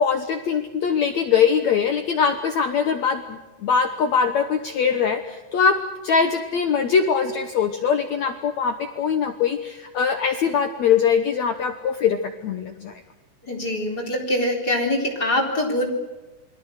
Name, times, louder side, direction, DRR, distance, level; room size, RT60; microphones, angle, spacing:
voice 1, 0.0-5.8 6.0-12.9, left 6 dB, 65° left, 7 dB, 1.9 m, -22 dB
voice 2, 13.4-15.8, left 1 dB, 25° left, 1 dB, 4.3 m, -23 dB
28.0 x 22.5 x 6.6 m, 1.2 s
omnidirectional pair, 4.4 m